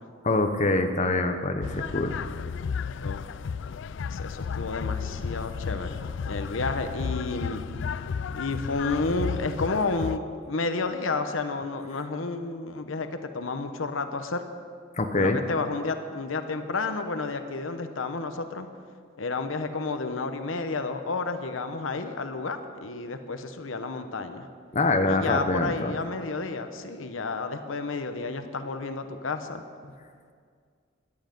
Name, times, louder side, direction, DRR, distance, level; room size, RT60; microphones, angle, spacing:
voice 1, 0.2-2.1 15.0-15.4 24.7-26.0, left 2 dB, 35° left, 6 dB, 0.9 m, -24 dB
sound 1, 1.6-10.2, left 6 dB, 65° left, 0.4 m, -33 dB
voice 2, 4.1-6.0 6.3-7.6 8.3-13.1 13.3-14.4 15.2-18.7 19.2-24.5 25.0-29.6, left 3 dB, 80° left, 8 dB, 0.9 m, -31 dB
16.5 x 11.5 x 5.3 m, 2.1 s
head